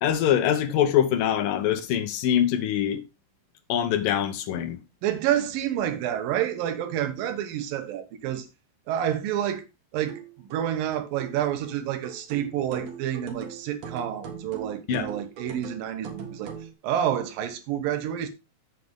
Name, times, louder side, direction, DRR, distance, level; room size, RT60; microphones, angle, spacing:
voice 1, 0.0-3.0 3.7-4.8 14.9-15.1, left 10 dB, 80° left, 2.6 m, -24 dB
voice 2, 5.0-8.5 8.9-9.6 9.9-18.3, right 10 dB, 80° right, 2.8 m, -29 dB
sound 1, 10.1-16.7, right 6 dB, 55° right, 2.5 m, -40 dB
7.9 x 7.4 x 3.6 m
omnidirectional pair, 4.0 m